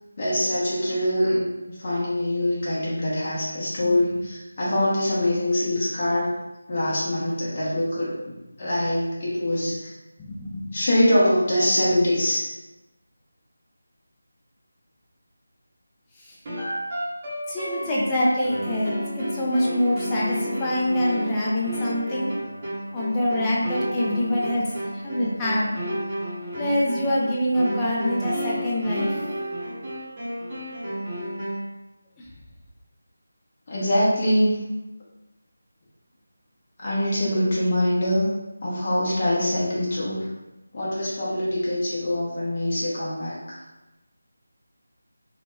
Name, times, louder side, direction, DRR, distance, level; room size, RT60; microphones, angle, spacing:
voice 1, 0.2-1.5 1.8-6.3 6.7-9.9 10.7-12.5 33.7-34.7 36.8-38.3 38.6-40.3 40.7-43.6, left 1 dB, 30° left, -7 dB, 0.9 m, -24 dB
voice 2, 10.2-10.7 16.2-16.3 17.5-22.3 22.9-25.7 26.6-29.1, left 1 dB, 10° left, -6 dB, 0.4 m, -25 dB
sound 1, 16.4-31.8, equal, 25° right, 0.7 m, -32 dB
2.8 x 2.2 x 3.2 m, 1.0 s
figure-of-eight pair, 170°, 0 cm